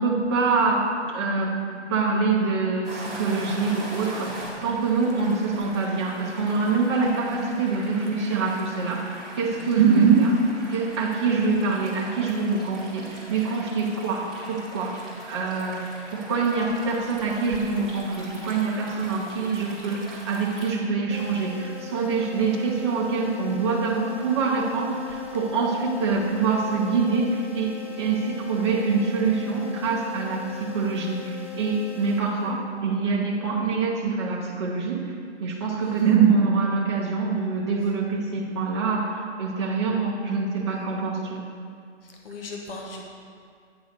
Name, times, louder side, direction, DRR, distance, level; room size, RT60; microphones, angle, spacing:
voice 1, 0.0-10.3 10.7-14.9 15.3-35.0 35.4-41.4, right 4 dB, 25° right, -4 dB, 0.7 m, -25 dB
sound 1, 2.8-20.7, right 1 dB, ahead, 1.1 m, -41 dB
sound 2, 21.1-32.8, left 10 dB, 90° left, 1.9 m, -40 dB
voice 2, 42.0-43.1, left 3 dB, 50° left, 0 dB, 1.1 m, -39 dB
9.3 x 3.9 x 6.5 m, 2.2 s
hypercardioid pair, 160°, 36 cm